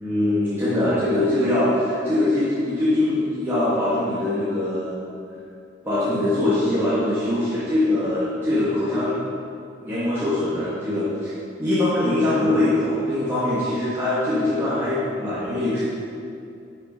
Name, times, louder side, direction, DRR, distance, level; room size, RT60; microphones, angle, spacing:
voice 1, 0.0-5.0 5.8-9.2 9.8-11.3 11.6-15.8, left 1 dB, 15° right, -12 dB, 2.3 m, -22 dB
11.5 x 7.1 x 5.5 m, 2.5 s
head